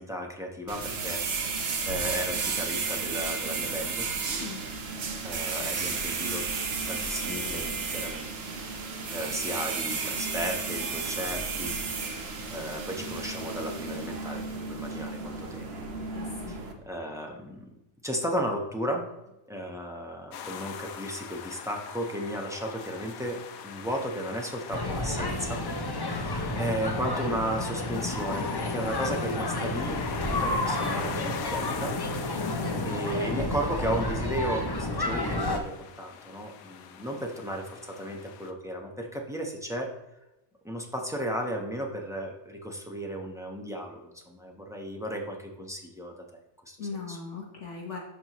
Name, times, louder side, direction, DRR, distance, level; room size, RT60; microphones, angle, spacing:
voice 1, 0.0-4.1 5.2-6.5 6.9-8.3 9.1-11.7 12.5-15.7 16.5-16.6 16.8-17.7 18.0-19.0 19.5-25.6 26.1-31.9 32.3-39.9 40.6-46.4 46.7-46.8 47.1-47.2, equal, 5° right, 1 dB, 0.7 m, -34 dB
sound 1, 0.7-16.7, right 4 dB, 50° right, 1.0 m, -33 dB
voice 2, 4.3-4.6 16.1-16.6 32.3-32.6 46.8-48.0, left 5 dB, 55° left, 0 dB, 1.5 m, -38 dB
sound 2, 20.3-38.5, left 7 dB, 75° left, 1.1 m, -42 dB
sound 3, 24.7-35.6, left 1 dB, 35° left, 0.4 m, -30 dB
12.5 x 4.3 x 3.0 m, 0.95 s
omnidirectional pair, 1.5 m